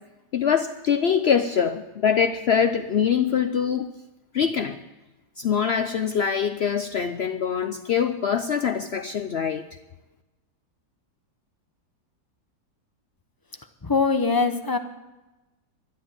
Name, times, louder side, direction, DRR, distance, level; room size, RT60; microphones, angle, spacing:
voice 1, 0.3-3.9 4.3-4.8 5.4-9.6, left 7 dB, 70° left, 9 dB, 0.6 m, -23 dB
voice 2, 13.8-14.8, left 4 dB, 25° left, 7 dB, 0.4 m, -22 dB
12.5 x 11.5 x 7.6 m, 1.1 s
omnidirectional pair, 1.8 m